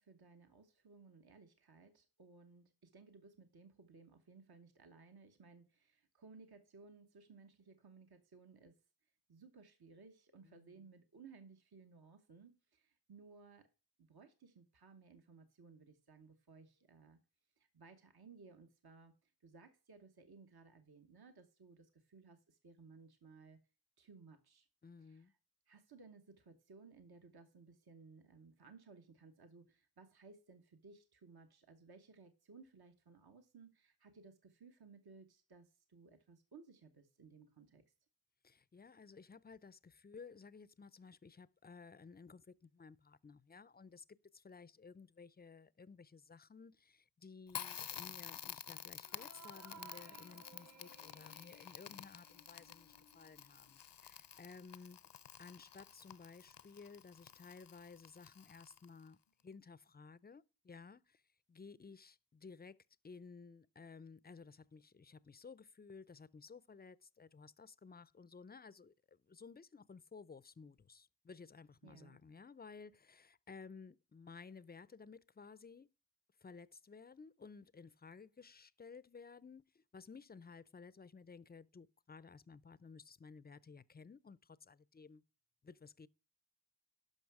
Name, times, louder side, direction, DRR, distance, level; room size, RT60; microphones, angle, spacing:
voice 1, 0.0-8.8 9.3-13.7 14.0-17.2 17.6-23.6 24.0-24.7 25.0-25.3 25.7-37.8 71.8-72.2, right 4 dB, 60° right, 1.0 m, -60 dB
voice 2, 10.4-10.9 24.8-25.3 38.4-44.0 44.3-55.0 55.4-59.2 59.4-61.2 61.5-75.9 76.4-85.2 85.6-86.1, left 5 dB, 25° left, 0.4 m, -56 dB
Crackle, 47.5-59.1, left 9 dB, 75° left, 0.6 m, -51 dB
sound 1, 49.0-53.8, right 4 dB, 40° right, 1.0 m, -60 dB
12.0 x 5.5 x 4.7 m
wide cardioid pair, 50°, 42 cm